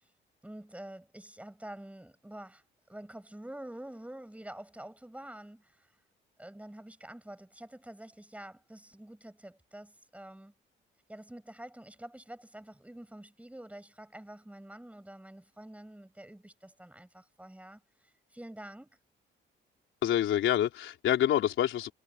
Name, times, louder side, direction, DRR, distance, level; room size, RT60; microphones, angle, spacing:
voice 1, 0.4-6.0 6.4-10.5 11.1-19.0, right 1 dB, 5° right, 7.6 m, -47 dB
voice 2, 20.0-21.9, left 11 dB, 75° left, 4.0 m, -27 dB
cardioid pair, 90°, 20 cm